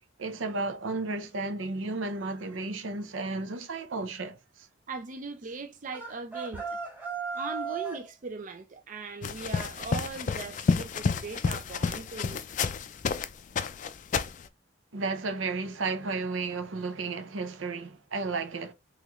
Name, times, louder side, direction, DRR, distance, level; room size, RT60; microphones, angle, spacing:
voice 1, 0.2-4.7 14.9-18.7, right 3 dB, 85° right, 0.7 m, -33 dB
voice 2, 4.9-6.8 7.3-12.4, right 4 dB, 40° right, 0.4 m, -39 dB
sound 1, 5.9-8.1, right 5 dB, 10° right, 1.0 m, -35 dB
sound 2, 9.2-13.3 13.6-14.4, left 5 dB, 40° left, 0.3 m, -30 dB
3.7 x 3.1 x 3.0 m
head